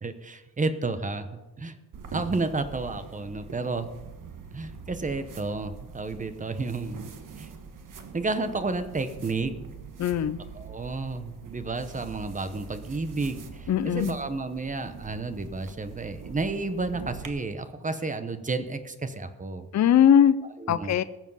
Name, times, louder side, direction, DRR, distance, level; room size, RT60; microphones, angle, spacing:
voice 1, 0.0-1.8 2.1-3.9 4.5-7.5 8.1-9.5 10.5-19.7 20.6-20.9, right 3 dB, 20° right, 10 dB, 0.9 m, -31 dB
sound 1, 1.9-17.3, right 6 dB, 55° right, 1.3 m, -43 dB
voice 2, 10.0-10.4 13.7-14.2 19.7-20.3 20.7-21.0, left 9 dB, 45° left, 14 dB, 0.5 m, -20 dB
20.0 x 7.3 x 5.5 m, 1.1 s
wide cardioid pair, 175°, 38 cm